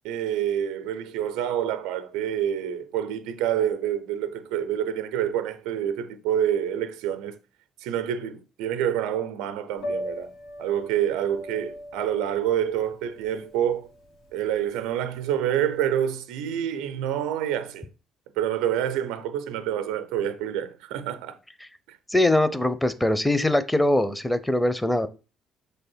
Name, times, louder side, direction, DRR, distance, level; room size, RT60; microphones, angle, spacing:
voice 1, 0.0-7.4 7.8-10.3 10.6-13.9 14.3-17.9 18.4-21.4 21.9-22.0, right 10 dB, 75° right, 0.6 m, -27 dB
Piano, 9.8-15.7, equal, 80° left, 1.9 m, -39 dB
voice 2, 22.1-25.1, left 1 dB, 10° left, 0.7 m, -22 dB
6.4 x 3.4 x 4.4 m
hypercardioid pair, 50°, 0 cm